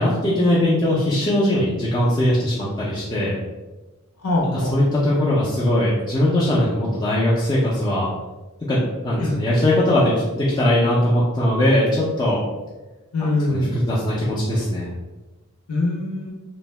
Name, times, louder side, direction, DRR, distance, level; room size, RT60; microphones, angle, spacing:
voice 1, 0.0-3.3 4.5-8.1 8.7-12.4 13.2-14.9, left 1 dB, 20° left, -8 dB, 0.4 m, -20 dB
voice 2, 4.2-4.7 9.2-9.3 13.1-13.8 15.7-16.3, left 2 dB, 80° left, -1 dB, 0.7 m, -23 dB
2.6 x 2.1 x 3.1 m, 1.1 s
head